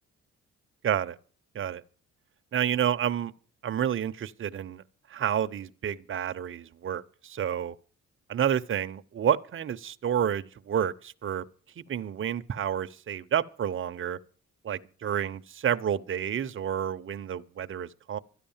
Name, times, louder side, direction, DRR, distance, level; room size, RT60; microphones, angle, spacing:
voice 1, 0.8-1.2 1.5-1.8 2.5-3.3 3.6-4.8 5.1-7.7 8.3-11.4 11.8-14.2 14.6-18.2, right 9 dB, 45° right, 0.8 m, -29 dB
13.0 x 9.9 x 7.2 m
cardioid pair, 90°, 30 cm